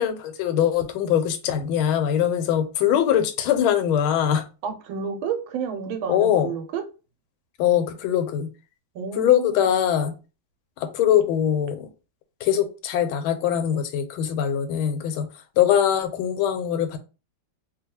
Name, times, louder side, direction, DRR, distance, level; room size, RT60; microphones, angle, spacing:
voice 1, 0.0-4.4 6.1-6.5 7.6-8.5 9.2-10.1 10.8-11.9 12.4-15.3 15.6-17.0, left 10 dB, 90° left, 1.4 m, -22 dB
voice 2, 4.6-6.8 8.9-9.5, right 6 dB, 85° right, 1.5 m, -30 dB
3.3 x 2.2 x 2.8 m
omnidirectional pair, 2.2 m